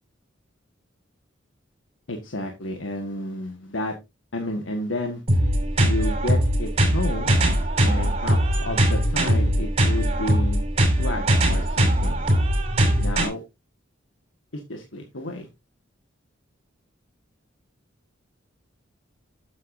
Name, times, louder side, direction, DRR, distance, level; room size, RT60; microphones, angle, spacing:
voice 1, 2.1-3.9 4.3-5.2 5.8-7.4 7.8-12.3 13.0-13.4 14.5-15.5, left 1 dB, 85° left, 4 dB, 1.7 m, -31 dB
sound 1, 5.3-13.3, right 1 dB, 35° right, 6.2 m, -21 dB
12.0 x 8.2 x 2.7 m, 0.23 s
head